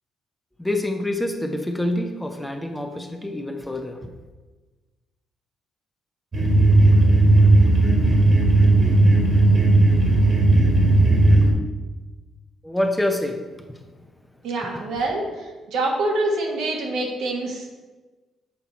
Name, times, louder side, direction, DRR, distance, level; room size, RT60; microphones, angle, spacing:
voice 1, 0.6-4.1 12.6-13.8, left 1 dB, 5° left, 5 dB, 0.6 m, -26 dB
sound 1, 6.3-11.5, right 2 dB, 35° right, 1.4 m, -15 dB
voice 2, 14.4-17.7, right 2 dB, 85° right, 0 dB, 1.4 m, -26 dB
7.4 x 4.6 x 4.0 m, 1.2 s
cardioid pair, 110°, 0 cm